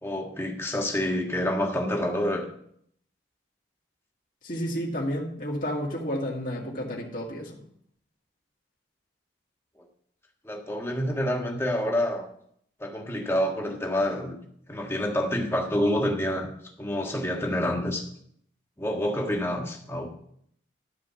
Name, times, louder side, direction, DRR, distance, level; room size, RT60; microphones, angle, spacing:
voice 1, 0.0-2.5 10.4-12.3 12.8-14.4 14.7-16.5 16.8-18.0 18.8-20.1, left 1 dB, 15° left, 1 dB, 1.5 m, -27 dB
voice 2, 4.4-7.6, equal, 45° left, -3 dB, 2.2 m, -31 dB
12.5 x 5.0 x 7.1 m, 0.67 s
head